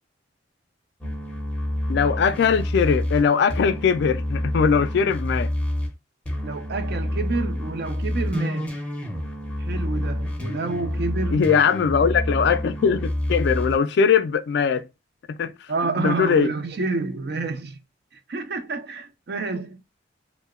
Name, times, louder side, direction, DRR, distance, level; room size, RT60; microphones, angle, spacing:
sound 1, 1.0-5.9 6.3-13.8, left 1 dB, 5° left, 0.6 m, -28 dB
voice 1, 1.9-5.5 11.3-14.9 15.3-15.5 16.0-16.5, left 6 dB, 60° left, 0.3 m, -20 dB
voice 2, 6.4-8.8 9.6-11.7 15.7-17.8 18.1-19.8, right 3 dB, 60° right, 0.5 m, -29 dB
2.8 x 2.0 x 2.3 m
head